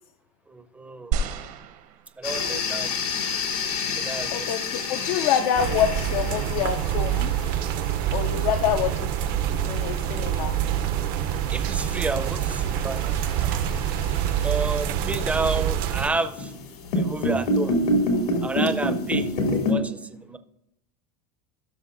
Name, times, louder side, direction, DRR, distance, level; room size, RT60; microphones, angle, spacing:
voice 1, 0.5-1.1 2.2-3.4 3.9-4.5 11.5-13.5 14.4-16.5 16.9-17.8 18.4-19.3 19.6-20.4, right 3 dB, 5° right, 9 dB, 0.5 m, -31 dB
sound 1, 1.1-2.6 3.4-3.5, right 5 dB, 65° right, 1.0 m, -30 dB
sound 2, 2.2-19.7, left 2 dB, 85° left, 2.4 m, -30 dB
voice 2, 4.3-7.3 8.1-9.1 9.6-10.5, left 10 dB, 65° left, 7 dB, 0.5 m, -26 dB
sound 3, 5.6-16.1, right 10 dB, 50° right, 0.6 m, -26 dB
17.0 x 6.2 x 2.5 m, 0.82 s
supercardioid pair, 125°, 19 cm